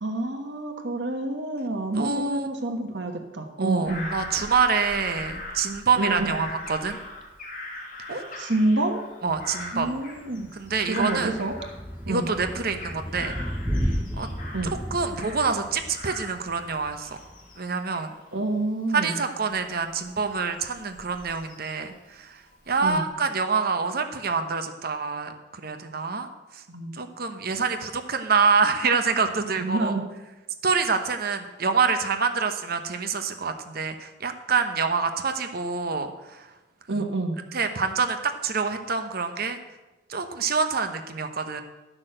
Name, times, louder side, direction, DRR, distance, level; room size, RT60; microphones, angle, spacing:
voice 1, 0.0-4.1 6.0-6.5 8.1-9.0 9.7-10.5 10.9-11.5 12.1-12.3 14.5-14.8 18.3-19.2 22.8-23.1 26.7-27.0 29.6-30.1 36.9-37.4, right 2 dB, 75° right, 4 dB, 1.3 m, -28 dB
voice 2, 1.9-2.5 3.6-7.0 8.1-8.2 9.2-9.9 10.6-11.3 12.1-13.3 14.2-14.3 14.6-17.1 17.6-18.1 18.9-22.3 22.7-26.3 26.5-26.6 27.0-29.9 30.6-36.5 36.9-37.0 37.5-39.6 40.1-41.6, right 5 dB, 55° right, 7 dB, 1.0 m, -26 dB
Bird vocalization bird call bird song / Crow, 3.8-12.2 12.5-15.6 15.9-21.9 22.5-23.0, left 1 dB, 50° left, 2.6 m, -41 dB
Thunder / Rain, 9.3-17.5, equal, 10° right, 1.0 m, -34 dB
12.0 x 6.3 x 7.7 m, 1.1 s
head